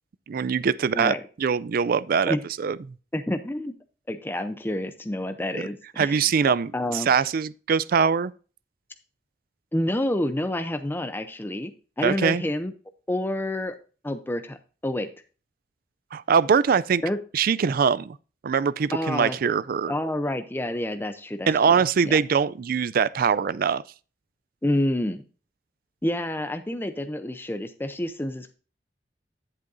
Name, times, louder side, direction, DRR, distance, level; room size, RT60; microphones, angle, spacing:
voice 1, 0.3-2.8 6.0-8.3 12.0-12.4 16.1-17.0 17.3-18.2 18.4-19.9 21.5-23.8, right 6 dB, 55° right, 0.4 m, -23 dB
voice 2, 3.1-3.7 4.1-6.2 6.5-7.1 9.7-11.7 12.0-12.7 13.1-13.7 14.0-14.6 14.8-15.1 17.0-17.2 18.9-19.4 19.9-22.2 24.6-25.2 26.0-28.5, left 1 dB, 10° left, 0.5 m, -28 dB
11.0 x 7.7 x 2.6 m
head